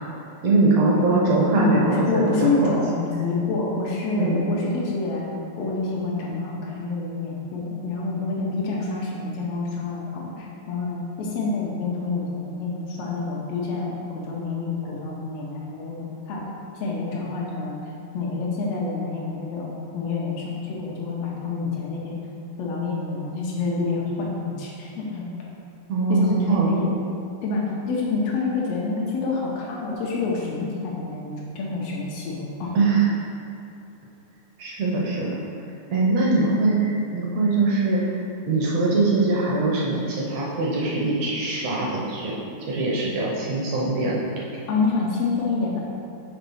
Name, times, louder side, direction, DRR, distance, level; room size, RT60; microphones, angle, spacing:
voice 1, 0.4-2.7 4.1-4.4 25.9-26.7 32.7-33.1 34.6-35.3 35.9-38.2 38.4-42.3 42.7-44.4, right 3 dB, 70° right, -4 dB, 1.6 m, -22 dB
voice 2, 1.6-16.4 16.8-17.8 18.1-22.2 22.6-25.2 26.1-26.9 27.4-32.7 44.7-45.8, left 3 dB, 85° left, -3 dB, 1.4 m, -27 dB
5.8 x 4.1 x 5.4 m, 2.6 s
omnidirectional pair, 3.9 m